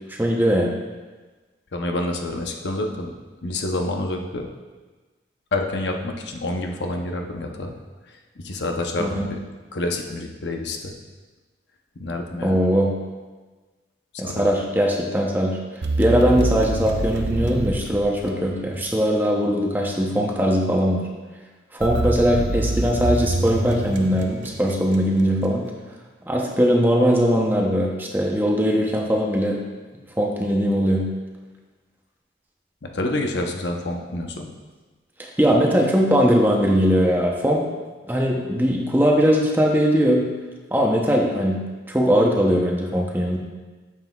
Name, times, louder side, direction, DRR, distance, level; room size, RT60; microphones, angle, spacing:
voice 1, 0.1-0.7 9.0-9.3 12.4-13.0 14.2-15.6 16.0-21.0 21.7-25.7 26.3-29.6 30.2-31.1 35.2-37.6 38.1-40.3 40.7-41.6 41.9-43.4, equal, 10° right, 0 dB, 0.7 m, -20 dB
voice 2, 1.7-3.1 3.4-4.5 5.5-7.7 8.4-9.4 9.7-10.9 12.0-12.6 14.1-14.5 32.8-34.5, left 2 dB, 80° left, 3 dB, 0.8 m, -28 dB
sound 1, 15.8-18.8 21.8-25.2, right 2 dB, 80° right, 0.6 m, -26 dB
9.2 x 7.3 x 2.4 m, 1.3 s
head